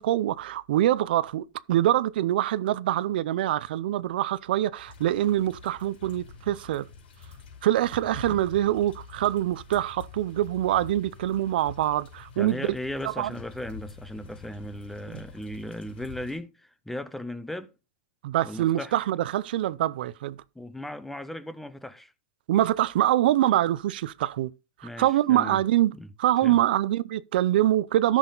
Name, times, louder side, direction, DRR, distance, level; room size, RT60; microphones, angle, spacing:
voice 1, 0.0-6.8 7.6-12.7 13.0-13.3 15.1-15.2 18.2-20.4 22.5-24.5 24.8-25.9 26.2-28.2, right 13 dB, 70° right, 0.5 m, -24 dB
sound 1, 4.8-16.4, left 5 dB, 80° left, 4.9 m, -46 dB
voice 2, 12.4-17.7 18.4-19.0 20.5-22.1 24.8-25.6 25.9-26.1 26.4-26.6, left 1 dB, 5° left, 0.6 m, -37 dB
13.5 x 6.3 x 3.9 m
supercardioid pair, 150°, 5 cm